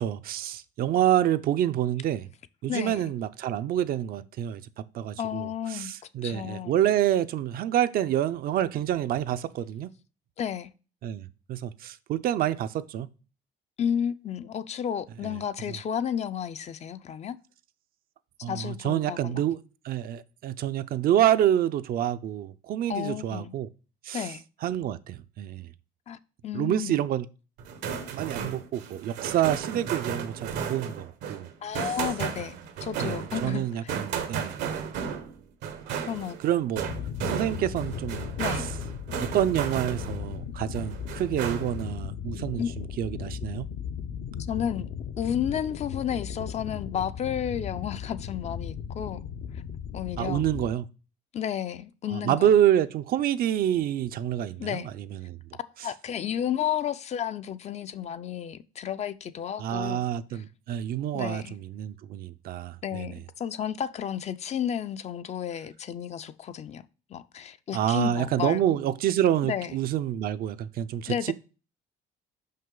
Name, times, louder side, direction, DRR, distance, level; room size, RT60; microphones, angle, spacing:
voice 1, 0.0-2.3 2.6-4.6 4.9-9.9 11.0-13.1 18.4-19.6 19.8-23.7 24.0-24.3 24.6-25.7 26.5-27.3 28.1-31.5 33.0-34.6 36.4-36.9 37.3-38.3 38.6-38.7 39.2-43.6 50.2-50.8 52.1-55.4 59.6-63.2 67.7-71.3, right 11 dB, 60° right, 0.5 m, -27 dB
voice 2, 2.7-3.1 5.2-5.9 6.2-6.7 10.4-10.7 13.8-17.4 18.5-19.4 22.9-23.5 24.1-24.4 26.1-27.1 31.6-33.9 36.0-36.4 38.4-38.6 42.6-42.7 44.5-49.2 49.5-49.6 49.9-50.4 51.3-52.5 54.6-54.9 55.8-60.0 60.3-60.4 61.1-61.5 62.8-66.8 67.1-68.6 69.4-69.8 71.1-71.3, left 9 dB, 40° left, 0.4 m, -32 dB
sound 1, 27.6-40.3 40.7-41.9, right 7 dB, 85° right, 1.1 m, -34 dB
sound 2, 36.7-50.7, left 8 dB, 70° left, 0.8 m, -37 dB
5.7 x 5.5 x 3.8 m
cardioid pair, 110°, 17 cm